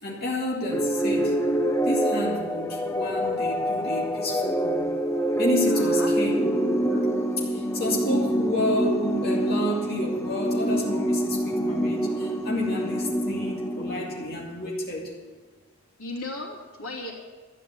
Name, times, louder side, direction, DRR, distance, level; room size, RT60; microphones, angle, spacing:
voice 1, 0.0-1.4 1.8-4.9 5.4-6.4 6.9-7.1 7.4-15.1, left 1 dB, 45° left, -4 dB, 2.5 m, -30 dB
sound 1, 0.7-14.4, right 1 dB, 10° left, 0.7 m, -26 dB
voice 2, 5.7-6.1 16.0-17.1, left 2 dB, 85° left, -1 dB, 3.0 m, -36 dB
13.0 x 9.5 x 7.9 m, 1.4 s
head